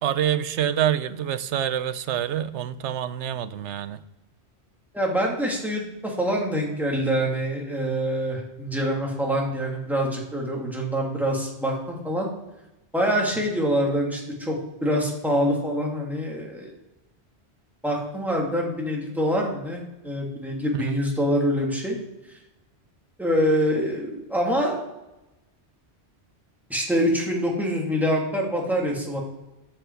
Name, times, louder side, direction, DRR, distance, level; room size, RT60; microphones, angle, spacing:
voice 1, 0.0-4.0 20.7-20.9, right 10 dB, 90° right, 14 dB, 1.0 m, -26 dB
voice 2, 4.9-12.3 12.9-14.6 14.8-16.7 17.8-22.0 23.2-24.8 26.7-29.2, equal, ahead, -2 dB, 2.2 m, -25 dB
13.5 x 7.8 x 4.5 m, 1.0 s
omnidirectional pair, 1.1 m